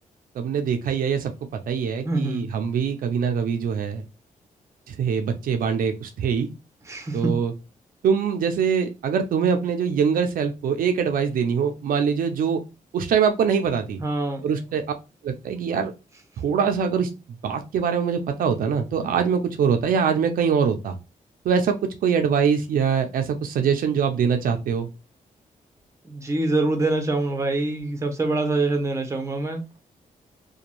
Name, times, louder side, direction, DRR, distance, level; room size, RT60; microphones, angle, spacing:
voice 1, 0.4-4.0 4.9-6.5 7.1-7.5 8.0-12.6 12.9-14.0 14.4-14.8 15.2-15.9 16.4-17.1 17.4-21.0 21.4-21.7 22.0-24.9, right 6 dB, 85° right, 0.4 m, -23 dB
voice 2, 2.0-2.5 6.9-7.3 14.0-14.4 26.1-29.6, right 2 dB, 20° right, 0.7 m, -25 dB
2.5 x 2.2 x 2.9 m
cardioid pair, 110°, 14 cm